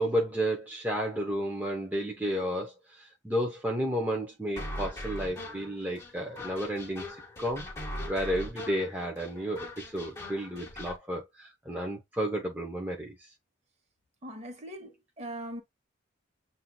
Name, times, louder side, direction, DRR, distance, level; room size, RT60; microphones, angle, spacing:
voice 1, 0.0-7.1 7.4-7.7 8.1-13.3, equal, 10° right, 0.7 m, -32 dB
sound 1, 4.6-11.0, left 1 dB, 15° left, 1.4 m, -40 dB
voice 2, 14.2-15.6, right 1 dB, 35° right, 1.3 m, -40 dB
7.4 x 2.7 x 2.2 m
head